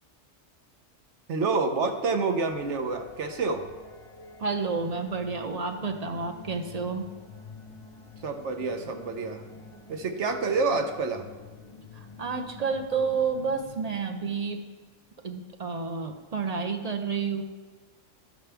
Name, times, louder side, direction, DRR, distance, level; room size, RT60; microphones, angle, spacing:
voice 1, 1.3-3.7 8.2-9.4 9.9-11.3, right 4 dB, 70° right, 6 dB, 1.1 m, -28 dB
sound 1, 2.5-14.7, left 4 dB, 30° left, 0.8 m, -48 dB
voice 2, 4.4-7.1 11.9-14.6 15.2-17.4, right 5 dB, 40° right, 5 dB, 0.6 m, -30 dB
11.0 x 7.2 x 3.4 m, 1.4 s
omnidirectional pair, 1.3 m